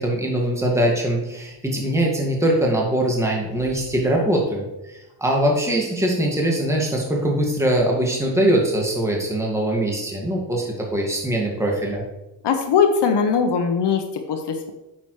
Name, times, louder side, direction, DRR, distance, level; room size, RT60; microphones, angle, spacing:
voice 1, 0.0-12.0, right 1 dB, 5° right, -1 dB, 2.1 m, -22 dB
voice 2, 12.4-14.7, left 6 dB, 60° left, 5 dB, 1.1 m, -20 dB
8.7 x 7.3 x 3.2 m, 0.97 s
supercardioid pair, 70°, 47 cm